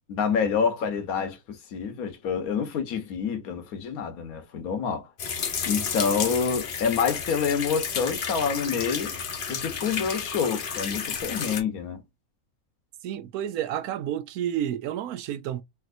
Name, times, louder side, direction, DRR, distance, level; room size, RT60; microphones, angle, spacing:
voice 1, 0.1-5.1 5.7-9.2 9.5-12.0, left 6 dB, 85° left, 1.3 m, -27 dB
sound 1, 5.2-11.6, left 6 dB, 50° left, 0.7 m, -31 dB
voice 2, 13.0-15.6, right 11 dB, 85° right, 1.1 m, -30 dB
3.4 x 2.7 x 2.4 m
omnidirectional pair, 1.5 m